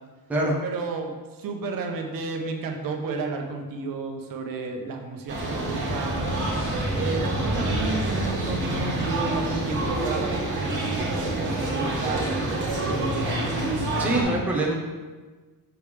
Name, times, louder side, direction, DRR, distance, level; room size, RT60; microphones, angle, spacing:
voice 1, 0.6-6.3 6.9-13.6, right 4 dB, 60° right, 3 dB, 0.8 m, -32 dB
sound 1, 5.3-14.2, right 1 dB, 30° right, 1.6 m, -27 dB
voice 2, 14.0-14.7, right 1 dB, 5° right, -2 dB, 0.6 m, -24 dB
6.9 x 3.4 x 4.9 m, 1.3 s
cardioid pair, 180°, 38 cm